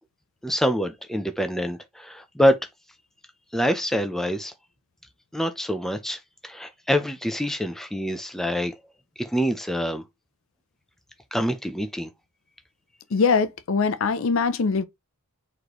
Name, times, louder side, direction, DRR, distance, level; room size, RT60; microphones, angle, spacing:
voice 1, 0.4-2.6 3.5-4.5 5.3-8.7 9.2-10.0 11.3-12.1, equal, ahead, 0.4 m, -25 dB
voice 2, 13.1-14.8, left 5 dB, 65° left, 0.5 m, -22 dB
4.2 x 3.2 x 2.9 m
head